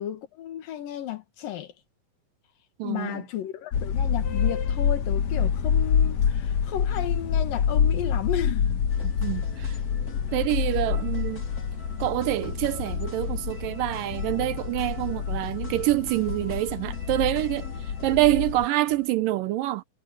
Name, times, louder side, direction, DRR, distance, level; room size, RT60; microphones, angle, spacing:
voice 1, 0.0-1.7 2.8-8.8, left 11 dB, 75° left, 3.3 m, -33 dB
voice 2, 2.8-3.2 9.0-9.8 10.3-11.5 12.0-19.8, right 16 dB, 80° right, 2.3 m, -26 dB
sound 1, 3.7-18.7, left 7 dB, 60° left, 2.3 m, -27 dB
sound 2, 8.9-19.1, left 1 dB, 25° left, 5.2 m, -45 dB
omnidirectional pair, 4.1 m